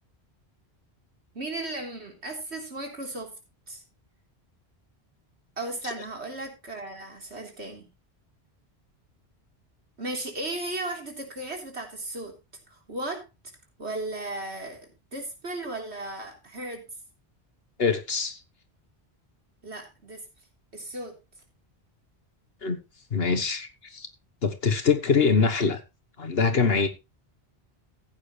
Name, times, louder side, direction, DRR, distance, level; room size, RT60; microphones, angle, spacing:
voice 1, 1.3-3.3 3.7-3.8 5.6-7.9 10.0-12.4 12.7-13.3 13.8-16.8 19.6-20.3 20.7-21.2, right 2 dB, 85° right, 3.9 m, -35 dB
voice 2, 17.8-18.4 22.6-22.8 23.1-24.1 24.4-25.8 26.2-26.9, left 5 dB, 65° left, 1.4 m, -24 dB
15.0 x 9.1 x 3.2 m
omnidirectional pair, 1.1 m